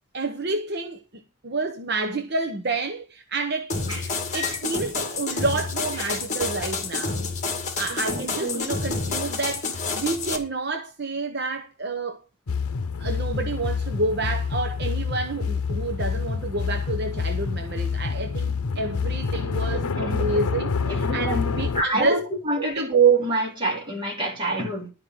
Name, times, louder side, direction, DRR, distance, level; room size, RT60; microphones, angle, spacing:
voice 1, 0.1-3.8 4.3-7.2 7.8-12.2 13.0-22.3 22.6-22.9, right 2 dB, 50° right, 0.9 m, -29 dB
sound 1, 3.7-10.4, left 4 dB, 35° left, 2.1 m, -29 dB
voice 2, 3.9-4.6 6.0-6.2 7.9-8.7 19.7-20.4 20.9-24.9, right 4 dB, 20° right, 3.3 m, -26 dB
sound 2, 12.5-21.8, left 5 dB, 90° left, 0.7 m, -27 dB
11.5 x 5.2 x 7.6 m
head